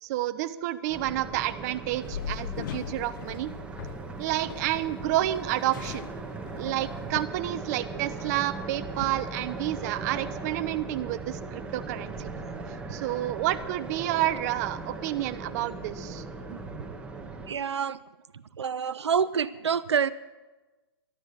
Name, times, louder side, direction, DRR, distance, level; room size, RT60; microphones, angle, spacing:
voice 1, 0.0-3.5 4.2-6.1 6.6-12.3 12.9-16.2 16.5-16.6, right 14 dB, 40° right, 12 dB, 0.8 m, -30 dB
sound 1, 0.9-17.5, right 3 dB, 10° right, 1.6 m, -39 dB
sound 2, 2.0-7.3, left 10 dB, 50° left, 0.5 m, -40 dB
voice 2, 17.5-18.0 18.6-20.1, right 7 dB, 85° right, 15 dB, 0.5 m, -27 dB
14.5 x 12.0 x 6.6 m, 1.2 s
hypercardioid pair, 130°, 14 cm